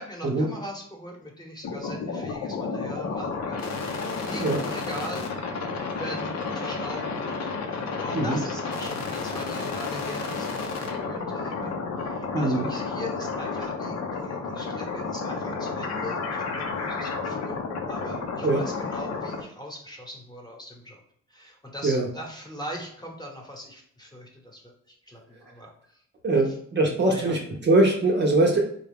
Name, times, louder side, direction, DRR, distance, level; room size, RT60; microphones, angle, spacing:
voice 1, 0.0-5.3 6.0-21.0 21.3-24.7 25.0-26.0 26.4-26.5 27.0-27.4, equal, 15° left, 0 dB, 1.0 m, -40 dB
sound 1, 1.6-19.4, left 4 dB, 60° left, 0.7 m, -31 dB
voice 2, 12.3-12.7 18.4-18.6 21.8-22.1 26.2-28.6, right 2 dB, 35° right, 1 dB, 0.7 m, -22 dB
3.7 x 2.3 x 3.4 m, 0.65 s
cardioid pair, 90°, 30 cm